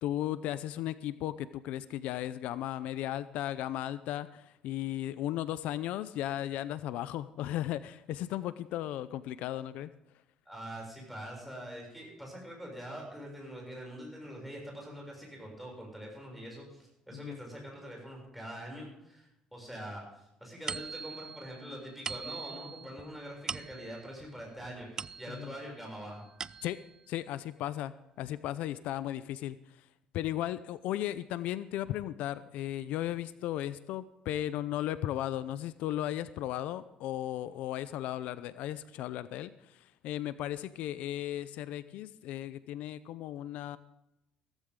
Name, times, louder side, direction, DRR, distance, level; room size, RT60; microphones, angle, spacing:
voice 1, 0.0-9.9 17.1-17.4 25.3-25.5 26.6-26.8 27.1-27.9 28.2-29.9 30.1-43.8, left 13 dB, 80° left, 15 dB, 0.6 m, -36 dB
voice 2, 10.4-26.2, equal, ahead, -1 dB, 6.9 m, -44 dB
sound 1, 20.7-25.7 26.1-27.0, right 5 dB, 30° right, 0.4 m, -42 dB
16.5 x 14.5 x 3.8 m, 0.84 s
cardioid pair, 125°, 2 cm